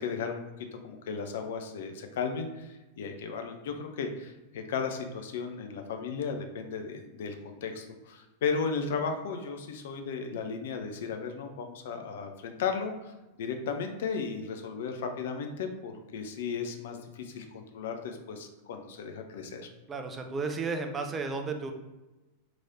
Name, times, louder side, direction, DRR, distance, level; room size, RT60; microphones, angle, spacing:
voice 1, 0.0-13.1 13.4-19.7, left 5 dB, 55° left, 5 dB, 0.5 m, -35 dB
voice 2, 19.9-21.7, right 4 dB, 20° right, 5 dB, 0.5 m, -33 dB
4.0 x 3.1 x 2.5 m, 1.0 s
figure-of-eight pair, 90°, 0 cm